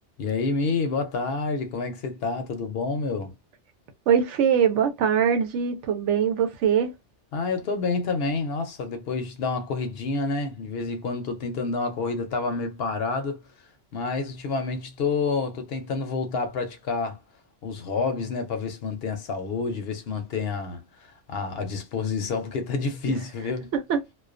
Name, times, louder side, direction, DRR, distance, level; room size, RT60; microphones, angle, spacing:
voice 1, 0.2-3.3 7.3-13.4 13.9-17.2 17.6-23.7, left 4 dB, 65° left, 0.8 m, -28 dB
voice 2, 4.1-6.9 23.7-24.0, right 7 dB, 85° right, 0.9 m, -22 dB
2.3 x 2.2 x 2.4 m
omnidirectional pair, 1.2 m